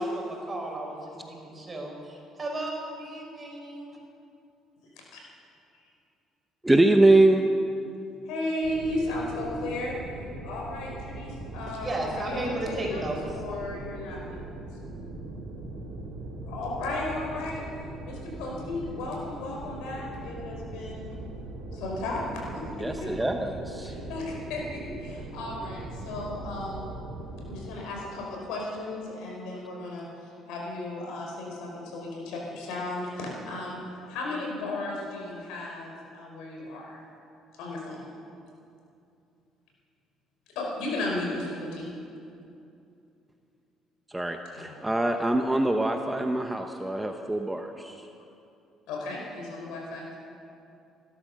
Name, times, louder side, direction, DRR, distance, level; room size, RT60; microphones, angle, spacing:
voice 1, 0.0-4.0 11.8-13.2, right 1 dB, 25° right, 0 dB, 4.8 m, -34 dB
voice 2, 6.6-7.5 22.8-23.9 44.1-47.9, right 2 dB, 10° right, 5 dB, 0.9 m, -23 dB
voice 3, 8.3-10.0 10.4-14.4 16.4-17.7 18.0-21.1 21.7-23.1 23.8-26.9 27.5-37.0 37.6-38.1 40.5-41.9 44.5-44.8 48.9-50.2, left 2 dB, 85° left, -2 dB, 4.9 m, -35 dB
sound 1, 8.6-27.6, right 2 dB, 90° right, 3.2 m, -40 dB
17.0 x 12.5 x 6.6 m, 2.6 s
cardioid pair, 95°, 0 cm